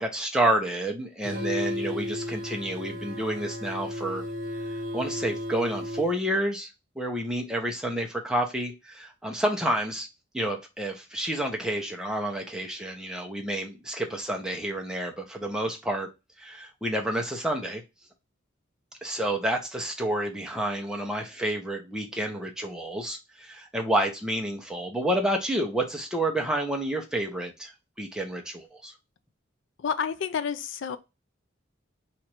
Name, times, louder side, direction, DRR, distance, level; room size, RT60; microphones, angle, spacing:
voice 1, 0.0-4.2 4.9-6.7 7.0-10.1 10.3-16.1 16.4-17.8 19.0-27.7 28.0-28.9, right 1 dB, 5° right, 0.6 m, -29 dB
sound 1, 1.2-6.2, left 1 dB, 45° right, 0.8 m, -34 dB
voice 2, 29.8-31.0, left 7 dB, 65° left, 0.4 m, -29 dB
3.0 x 2.5 x 4.3 m
head